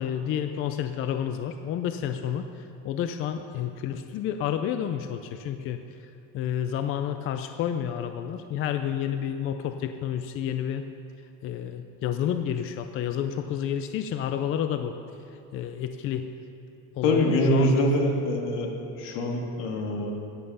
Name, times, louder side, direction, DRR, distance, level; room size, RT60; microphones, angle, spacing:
voice 1, 0.0-5.8 6.3-10.8 11.4-15.0 15.5-16.3 17.0-17.9, left 9 dB, 40° left, 8 dB, 0.4 m, -30 dB
voice 2, 17.0-18.7 19.0-20.1, left 1 dB, 80° left, 1 dB, 2.1 m, -24 dB
13.5 x 9.1 x 5.5 m, 2.8 s
cardioid pair, 175°, 33 cm